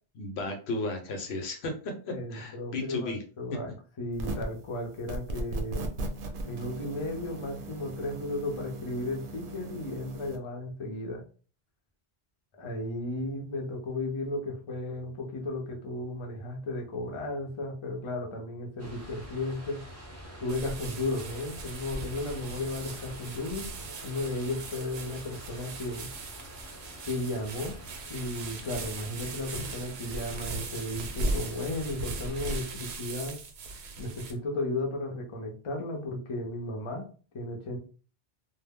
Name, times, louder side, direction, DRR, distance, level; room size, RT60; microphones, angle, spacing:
voice 1, 0.2-3.2, left 2 dB, 85° left, 4 dB, 0.9 m, -34 dB
voice 2, 2.1-3.7 4.0-5.9 6.4-11.2 12.6-19.8 20.4-23.7 24.0-26.1 27.1-27.8 28.1-33.4 34.0-37.1 37.3-37.8, left 2 dB, 35° left, 1 dB, 0.5 m, -34 dB
sound 1, 4.1-4.6 5.1-10.4, right 2 dB, 65° right, 0.7 m, -38 dB
sound 2, 18.8-32.6, equal, 15° right, 0.6 m, -47 dB
sound 3, 20.5-34.3, right 3 dB, 90° right, 0.8 m, -38 dB
2.1 x 2.0 x 3.5 m, 0.38 s
omnidirectional pair, 1.0 m